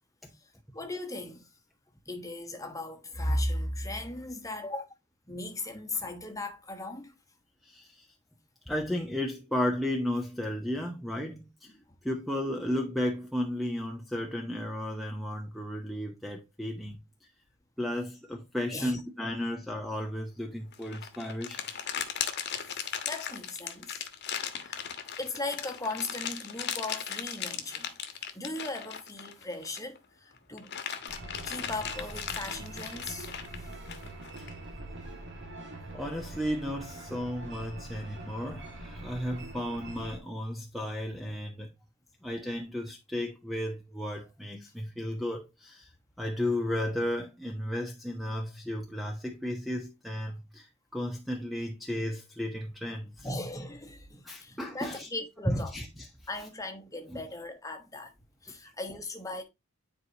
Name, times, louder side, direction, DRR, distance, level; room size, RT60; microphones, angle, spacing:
voice 1, 0.3-1.5 2.1-4.9 5.3-7.2 11.7-11.9 18.7-18.9 22.5-24.0 24.6-24.8 25.2-30.7 31.4-33.8 53.2-55.7 56.3-58.1 58.4-59.4, left 2 dB, 15° left, 1.3 m, -37 dB
voice 2, 7.6-8.1 8.7-11.7 12.0-17.0 17.8-21.6 29.4-29.5 35.9-41.7 42.2-45.9 46.2-53.3 54.2-55.1 55.5-56.1 57.1-57.3 58.5-58.6, left 1 dB, ahead, 0.9 m, -34 dB
sound 1, 20.7-30.0 30.4-34.5, left 8 dB, 55° left, 1.2 m, -37 dB
sound 2, 31.1-40.2, right 2 dB, 55° right, 2.3 m, -43 dB
9.9 x 4.7 x 2.9 m
head